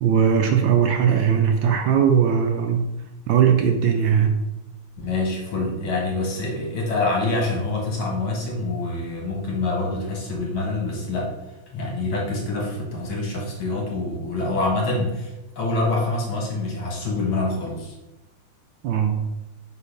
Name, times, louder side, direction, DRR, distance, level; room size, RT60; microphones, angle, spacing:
voice 1, 0.0-2.8 3.3-4.4 18.8-19.3, right 7 dB, 75° right, 5 dB, 1.2 m, -19 dB
voice 2, 5.0-11.3 11.7-17.9, left 2 dB, 70° left, -1 dB, 2.3 m, -26 dB
5.8 x 3.8 x 5.0 m, 0.97 s
omnidirectional pair, 2.4 m